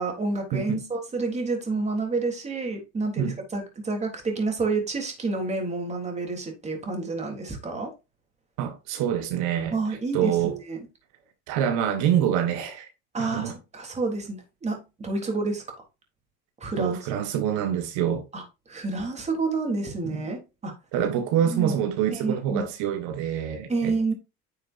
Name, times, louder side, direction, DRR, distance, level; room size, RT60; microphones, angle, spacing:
voice 1, 0.0-7.9 9.7-10.9 13.1-15.6 16.6-17.0 18.3-20.7 21.1-21.2 21.5-21.8 22.1-22.7 23.7-24.1, right 3 dB, 25° right, 3.5 m, -29 dB
voice 2, 0.5-0.9 3.2-3.4 8.6-9.7 10.1-10.5 11.5-12.9 13.2-13.5 16.8-18.2 20.0-20.2 20.9-23.9, right 9 dB, 80° right, 1.7 m, -26 dB
9.9 x 6.6 x 2.7 m
cardioid pair, 130°, 29 cm